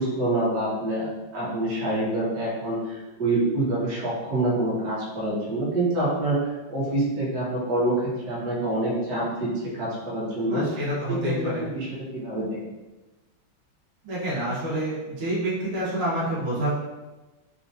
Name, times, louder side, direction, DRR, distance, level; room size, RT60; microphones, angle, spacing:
voice 1, 0.0-10.6 11.1-12.6, right 1 dB, 55° right, -7 dB, 1.3 m, -26 dB
voice 2, 10.5-11.6 14.0-16.7, right 1 dB, 75° right, -7 dB, 1.8 m, -28 dB
4.0 x 2.3 x 2.6 m, 1.1 s
omnidirectional pair, 2.3 m